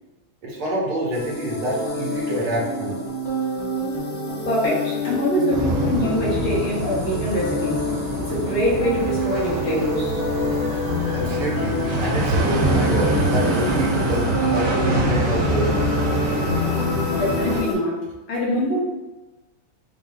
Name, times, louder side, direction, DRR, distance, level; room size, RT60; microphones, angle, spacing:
voice 1, 0.4-3.0 11.1-15.8, equal, 80° right, -5 dB, 2.1 m, -27 dB
sound 1, 1.1-17.7, left 1 dB, 60° left, 1.5 m, -27 dB
voice 2, 4.5-7.8 8.3-10.2 17.1-18.8, equal, 75° left, -4 dB, 2.0 m, -24 dB
sound 2, 5.5-17.6, right 2 dB, 65° right, 1.3 m, -25 dB
5.1 x 2.1 x 3.6 m, 1.1 s
omnidirectional pair, 2.3 m